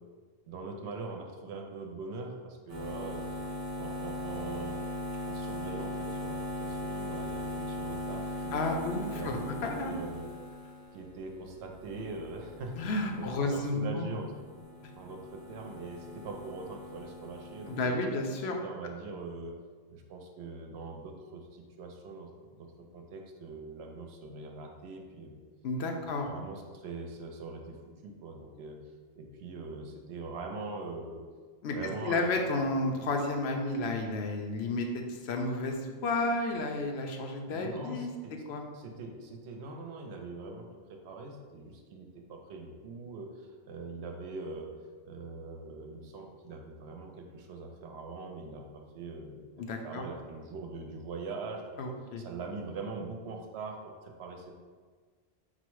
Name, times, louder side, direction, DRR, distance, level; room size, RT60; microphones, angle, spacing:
voice 1, 0.5-2.3 2.7-3.3 3.8-4.8 5.3-8.8 9.1-10.3 10.9-12.7 13.2-14.4 15.0-15.2 15.5-18.0 18.6-19.6 20.1-21.4 21.8-22.3 22.6-22.7 22.9-25.4 25.9-27.8 28.0-28.8 29.2-31.2 31.7-32.6 37.5-38.3 38.8-40.6 41.0-43.3 43.7-44.7 45.1-48.6 48.9-49.4 49.8-51.8 52.2-53.8 54.2-54.5, right 3 dB, 75° right, 3 dB, 0.8 m, -42 dB
sound 1, 2.7-13.9 14.2-17.9, left 1 dB, 15° right, 0.8 m, -39 dB
voice 2, 8.5-9.9 12.8-14.2 17.7-18.6 25.6-26.4 31.6-31.8 32.0-35.8 36.0-38.1 38.5-38.6 49.6-50.0 51.8-52.2, left 2 dB, 75° left, 3 dB, 0.8 m, -32 dB
4.2 x 2.1 x 4.5 m, 1.5 s
omnidirectional pair, 1.1 m